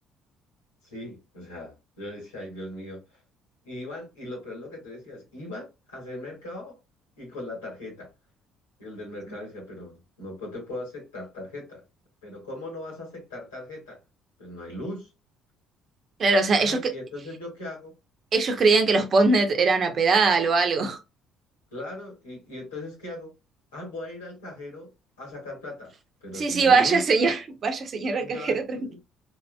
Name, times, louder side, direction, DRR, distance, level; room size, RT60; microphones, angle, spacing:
voice 1, 0.8-3.2 3.6-6.8 7.2-8.1 8.8-11.8 12.2-14.0 14.4-15.1 16.5-17.9 18.5-18.6 21.7-23.3 23.7-24.9 25.2-25.9 26.2-27.0 28.2-29.0, left 1 dB, 90° left, 1.8 m, -39 dB
voice 2, 16.2-16.8 18.3-21.0 26.3-28.8, right 4 dB, 45° right, 0.8 m, -21 dB
3.6 x 2.7 x 2.2 m
hypercardioid pair, 55°, 0 cm